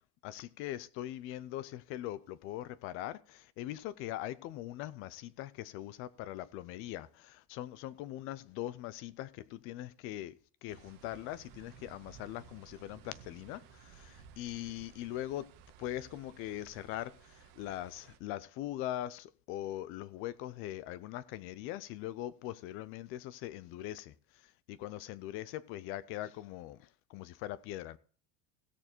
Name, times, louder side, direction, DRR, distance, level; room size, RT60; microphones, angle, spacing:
voice 1, 0.2-15.5 15.8-24.1 24.4-28.0, left 14 dB, 30° left, 0.4 m, -41 dB
sound 1, 10.7-18.2, right 8 dB, 50° right, 1.7 m, -57 dB
16.0 x 6.7 x 4.4 m
supercardioid pair, 160°, 45 cm